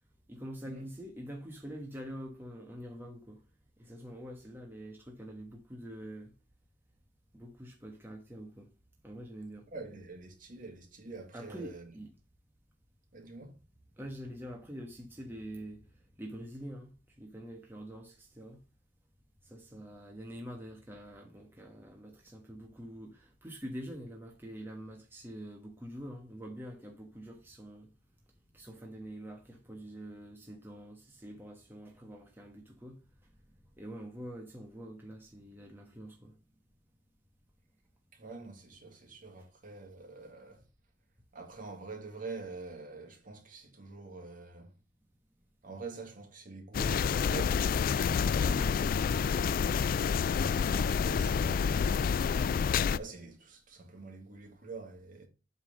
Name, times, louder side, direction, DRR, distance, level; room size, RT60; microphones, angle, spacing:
voice 1, 0.3-3.4 3.8-6.3 7.3-8.7 9.0-9.7 11.3-12.1 14.0-18.6 19.4-27.9 28.5-33.4 33.8-36.4 48.2-48.7, equal, 10° right, 1.3 m, -45 dB
voice 2, 9.7-11.9 13.1-13.5 38.1-40.6 41.3-44.7 45.6-47.6 47.9-52.2 52.9-55.3, right 3 dB, 50° right, 2.1 m, -46 dB
sound 1, 46.7-53.0, left 6 dB, 50° left, 0.3 m, -28 dB
8.2 x 3.8 x 6.4 m
head